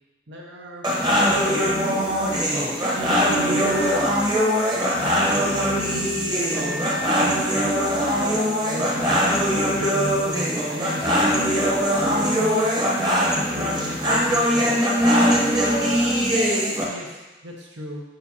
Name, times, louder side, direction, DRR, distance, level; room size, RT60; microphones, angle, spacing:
voice 1, 0.3-2.6 2.9-4.2 5.4-9.2 9.7-11.2 12.0-12.7 13.3-14.7 15.6-18.0, equal, 85° right, -1 dB, 1.2 m, -35 dB
sound 1, 0.8-16.9, equal, 25° right, 1.0 m, -21 dB
Wind instrument woodwind instrument, 3.6-7.2, equal, 5° left, 0.4 m, -38 dB
9.4 x 5.1 x 2.8 m, 1.1 s
head